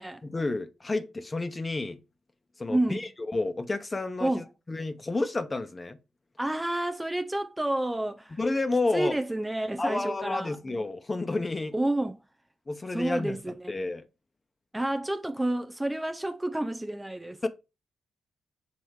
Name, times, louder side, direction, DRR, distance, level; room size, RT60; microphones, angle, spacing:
voice 1, 0.2-2.0 2.6-6.0 8.4-9.2 9.8-11.7 12.7-14.0 17.4-17.5, left 2 dB, 30° left, 0.9 m, -30 dB
voice 2, 2.7-3.0 4.2-4.4 6.4-8.4 8.9-10.6 11.7-12.2 12.9-13.7 14.7-17.5, right 1 dB, 15° right, 0.5 m, -29 dB
6.5 x 3.1 x 4.7 m
supercardioid pair, 50°, 0 cm